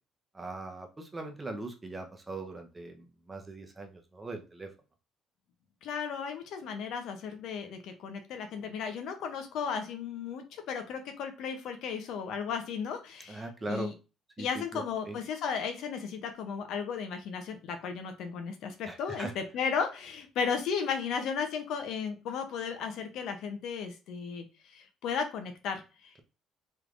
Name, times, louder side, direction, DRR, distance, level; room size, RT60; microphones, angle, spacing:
voice 1, 0.3-4.7 13.3-13.9 14.4-15.2 18.9-19.3, right 2 dB, 20° right, 3 dB, 0.8 m, -40 dB
voice 2, 5.8-13.9 14.4-24.4 24.7-26.1, left 6 dB, 75° left, 6 dB, 0.7 m, -35 dB
3.3 x 3.2 x 2.5 m, 0.31 s
supercardioid pair, 80°, 0 cm